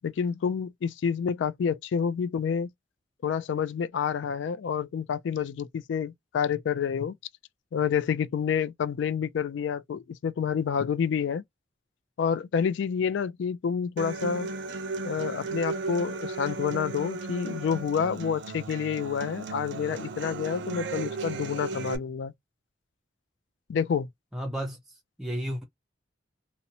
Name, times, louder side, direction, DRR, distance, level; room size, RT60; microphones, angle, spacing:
voice 1, 0.0-2.7 3.2-7.1 7.7-11.4 12.2-14.5 15.0-22.3 23.7-24.1, left 7 dB, 70° left, 0.3 m, -28 dB
Human voice / Acoustic guitar, 14.0-22.0, right 4 dB, 65° right, 0.5 m, -35 dB
voice 2, 24.3-25.6, equal, ahead, 0.4 m, -33 dB
2.8 x 2.1 x 2.6 m
head